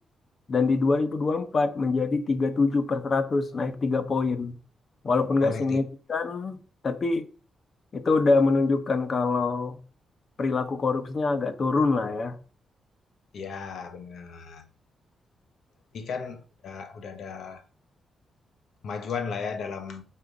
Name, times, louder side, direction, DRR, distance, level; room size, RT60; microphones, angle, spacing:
voice 1, 0.5-4.5 5.0-6.6 6.8-7.2 7.9-9.8 10.4-12.3, left 3 dB, 45° left, 1.1 m, -25 dB
voice 2, 5.4-5.8 13.3-14.7 15.9-17.6 18.8-20.0, left 5 dB, 70° left, 1.2 m, -35 dB
9.3 x 4.5 x 5.0 m
cardioid pair, 95°, 0 cm